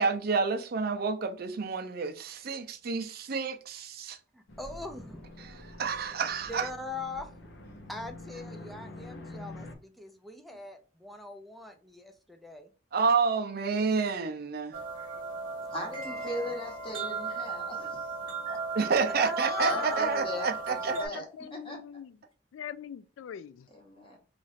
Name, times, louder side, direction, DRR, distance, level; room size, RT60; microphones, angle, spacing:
voice 1, 0.0-4.2 5.7-6.7 12.9-14.8 18.7-20.9, right 5 dB, 50° right, 0.5 m, -29 dB
voice 2, 4.3-5.2 6.5-7.4 7.9-12.7 15.6-16.6 19.1-20.5, left 2 dB, ahead, 0.5 m, -42 dB
sound 1, 4.5-9.7, left 2 dB, 65° left, 0.8 m, -46 dB
sound 2, 14.7-21.1, right 3 dB, 75° right, 1.0 m, -35 dB
voice 3, 15.7-18.1 18.4-18.6 19.0-19.1 19.6-21.2 21.5-21.8 23.7-24.2, equal, 30° left, 1.1 m, -38 dB
voice 4, 19.6-20.3 20.9-22.2 22.5-23.7, left 8 dB, 85° left, 0.3 m, -39 dB
3.0 x 2.5 x 4.1 m
head